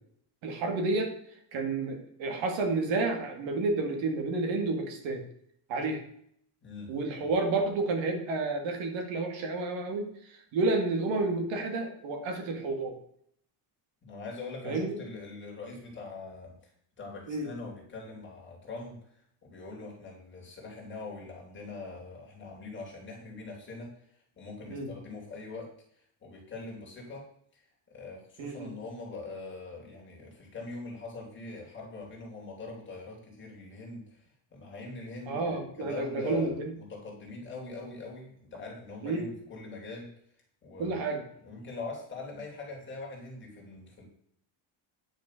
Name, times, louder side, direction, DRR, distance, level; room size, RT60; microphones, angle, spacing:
voice 1, 0.4-1.1 1.5-5.2 5.7-6.0 6.9-12.9 14.6-15.0 17.3-17.5 24.7-24.9 28.4-28.7 35.3-36.7 39.0-39.3 40.8-41.2, right 3 dB, 70° right, 4 dB, 2.6 m, -30 dB
voice 2, 6.6-6.9 7.2-7.3 14.0-27.3 27.5-40.1 40.6-41.0 41.4-44.0, left 3 dB, 25° left, -2 dB, 3.3 m, -43 dB
10.0 x 6.3 x 6.7 m, 0.67 s
cardioid pair, 180°, 48 cm